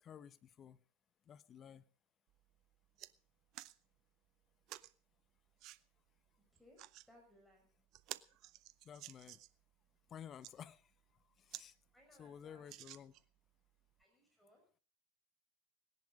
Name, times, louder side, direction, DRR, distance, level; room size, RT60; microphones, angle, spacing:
voice 1, 0.0-0.8 1.3-1.9 8.8-9.4 10.1-10.9 11.4-11.8 12.2-13.1, left 8 dB, 30° left, 0.9 m, -53 dB
sound 1, 2.3-2.4 2.7-3.1 3.5-3.8 4.7-4.9 5.6-5.8 6.6-7.1 7.5-7.6 7.9-9.6 10.2-10.5 11.1-11.2 11.5-11.7 12.0-12.1 12.6-13.4 14.0-14.1, right 16 dB, 45° right, 0.7 m, -52 dB
voice 2, 7.1-7.7 11.9-12.7 14.0-14.6, left 1 dB, 5° left, 5.9 m, -65 dB
19.0 x 11.0 x 5.2 m
hypercardioid pair, 105°, 0 cm